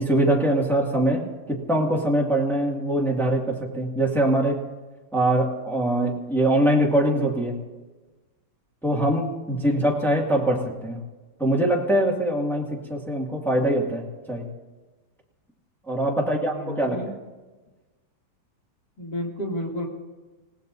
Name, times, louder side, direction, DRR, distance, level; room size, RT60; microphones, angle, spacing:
voice 1, 0.0-4.6 5.1-7.6 8.8-11.0 11.4-14.5 15.9-17.0, right 1 dB, ahead, -2 dB, 1.9 m, -23 dB
voice 2, 9.5-9.9 16.1-17.1 19.0-19.9, equal, 50° left, -2 dB, 3.4 m, -32 dB
29.0 x 17.0 x 2.7 m, 1.2 s
omnidirectional pair, 2.4 m